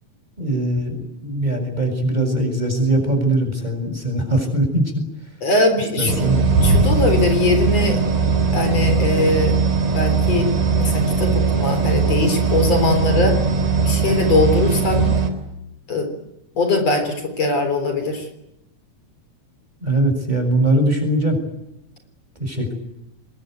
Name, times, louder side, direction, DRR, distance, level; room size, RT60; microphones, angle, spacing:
voice 1, 0.4-5.0 6.0-6.5 19.8-21.4 22.4-22.7, right 1 dB, 15° right, 4 dB, 7.2 m, -21 dB
voice 2, 5.4-6.3 6.6-8.0 8.5-9.6 9.9-10.5 10.8-13.4 13.8-15.1 15.9-16.1 16.6-18.3, left 2 dB, 55° left, 7 dB, 4.9 m, -21 dB
sound 1, 6.1-15.3, right 5 dB, 90° right, 6.1 m, -19 dB
26.5 x 22.0 x 9.4 m, 0.85 s
omnidirectional pair, 3.4 m